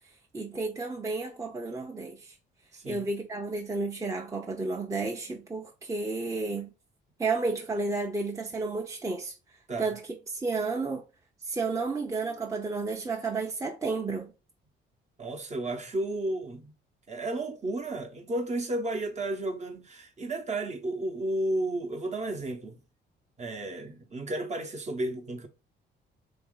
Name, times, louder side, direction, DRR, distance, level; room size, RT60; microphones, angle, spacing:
voice 1, 0.3-2.4 2.9-6.7 7.2-9.3 9.8-10.0 10.3-11.0 11.4-14.3, right 3 dB, 15° right, 0.7 m, -32 dB
voice 2, 2.7-3.1 9.7-9.9 15.2-16.8 17.1-22.8 23.4-25.5, right 1 dB, 35° right, 1.0 m, -33 dB
3.8 x 2.8 x 3.8 m
cardioid pair, 90°, 20 cm